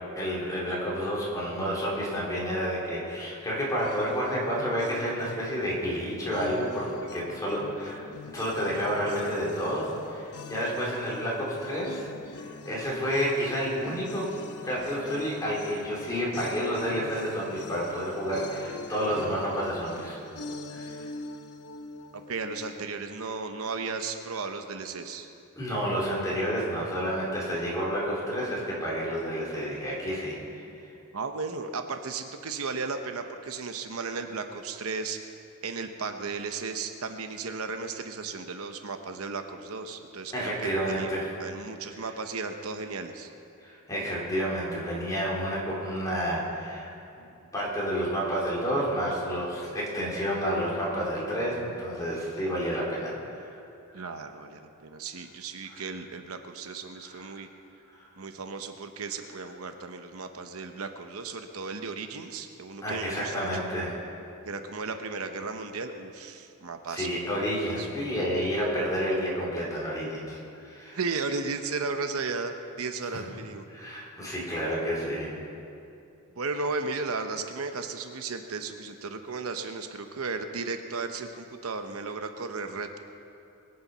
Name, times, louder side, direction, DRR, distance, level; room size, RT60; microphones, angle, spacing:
voice 1, 0.2-12.1 12.3-14.3 14.6-20.3 20.7-21.1 25.6-30.3 40.3-41.3 41.9-42.0 43.6-46.9 47.5-53.6 53.9-54.1 55.7-55.8 57.1-57.2 58.0-58.1 62.8-64.0 66.9-70.4 70.6-71.0 73.1-73.2 73.7-75.3, equal, 15° left, -5 dB, 3.8 m, -30 dB
sound 1, 3.8-22.9, left 3 dB, 85° left, 0.8 m, -44 dB
voice 2, 22.3-25.3 31.1-35.2 35.6-41.1 41.4-43.3 53.9-57.5 58.2-63.6 64.5-67.1 67.8-67.9 71.0-73.6 76.3-83.0, right 4 dB, 70° right, 7 dB, 0.8 m, -35 dB
22.0 x 8.8 x 5.6 m, 2.6 s
head